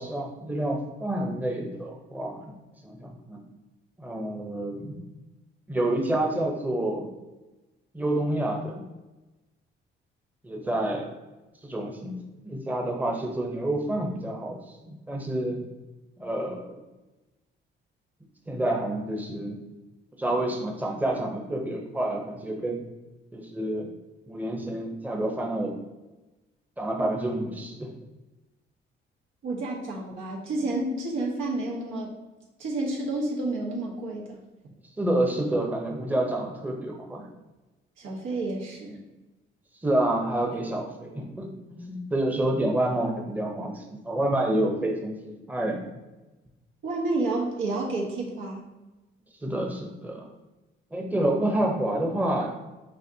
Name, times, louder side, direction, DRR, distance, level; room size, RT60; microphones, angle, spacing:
voice 1, 0.0-3.4 4.0-5.0 5.7-7.1 7.9-8.8 10.4-11.1 11.6-12.2 12.4-15.6 16.2-16.8 18.5-19.6 20.2-22.8 23.3-23.9 24.3-25.8 26.8-27.9 30.1-30.2 35.0-37.3 39.8-45.8 49.4-50.3 50.9-52.5, right 1 dB, 10° right, 0 dB, 0.7 m, -28 dB
voice 2, 29.4-32.1 32.6-34.4 38.0-39.0 46.8-48.6, right 2 dB, 85° right, -3 dB, 1.2 m, -30 dB
5.5 x 2.8 x 2.7 m, 1.1 s
cardioid pair, 90°, 20 cm